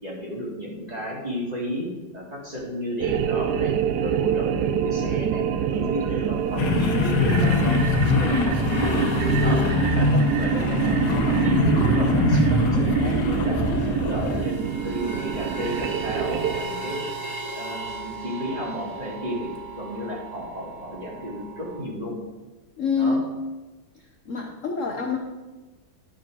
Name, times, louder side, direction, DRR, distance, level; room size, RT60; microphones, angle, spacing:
voice 1, 0.0-5.4 5.7-7.9 8.2-9.1 9.4-13.6 13.9-17.0 17.6-19.5 19.7-22.2 23.0-23.2, equal, 20° right, -3 dB, 2.1 m, -33 dB
sound 1, 3.0-16.6, right 9 dB, 70° right, 1.0 m, -26 dB
sound 2, 6.5-12.4 12.6-12.7 12.9-21.8, right 2 dB, 45° right, 1.5 m, -37 dB
sound 3, 6.6-14.5, left 3 dB, 70° left, 1.6 m, -23 dB
voice 2, 22.8-23.3 24.2-25.2, left 4 dB, 55° left, 2 dB, 1.0 m, -25 dB
11.0 x 5.0 x 6.2 m, 1.2 s
omnidirectional pair, 2.1 m